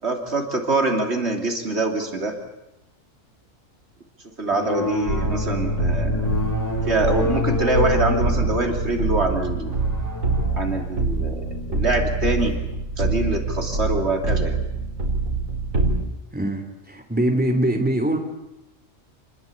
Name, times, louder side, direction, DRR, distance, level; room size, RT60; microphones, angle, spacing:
voice 1, 0.0-2.3 4.4-6.4 6.9-9.7 10.6-12.6 13.0-14.6, right 2 dB, 55° right, 3 dB, 3.2 m, -24 dB
sound 1, 4.5-12.6, left 3 dB, 15° left, 3.3 m, -29 dB
sound 2, 5.1-16.0, right 3 dB, 85° right, 4.7 m, -25 dB
voice 2, 16.3-18.2, right 1 dB, 5° right, 5 dB, 3.1 m, -23 dB
28.5 x 20.5 x 8.5 m, 0.93 s
omnidirectional pair, 1.4 m